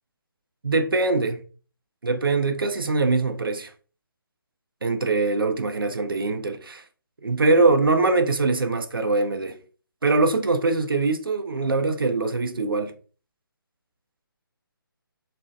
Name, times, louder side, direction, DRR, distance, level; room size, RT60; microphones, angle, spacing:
voice 1, 0.6-1.4 2.0-3.7 4.8-6.8 7.2-9.6 10.0-12.9, right 3 dB, 70° right, 0.5 m, -22 dB
2.5 x 2.1 x 2.4 m
figure-of-eight pair, 145°, 12 cm